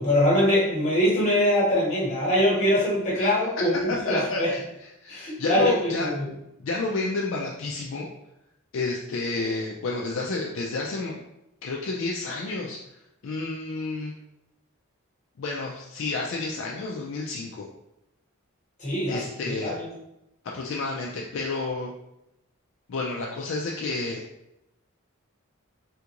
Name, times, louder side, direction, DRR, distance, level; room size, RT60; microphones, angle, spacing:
voice 1, 0.0-4.5 5.1-6.3 18.8-19.9, equal, 35° left, -5 dB, 1.1 m, -23 dB
voice 2, 3.9-4.6 5.0-6.1 6.6-8.1 8.7-11.2 11.6-12.8 13.2-14.1 15.4-17.7 19.1-19.8 20.4-21.9 22.9-24.2, left 3 dB, 60° left, -1 dB, 0.4 m, -30 dB
3.5 x 2.4 x 2.9 m, 0.86 s
head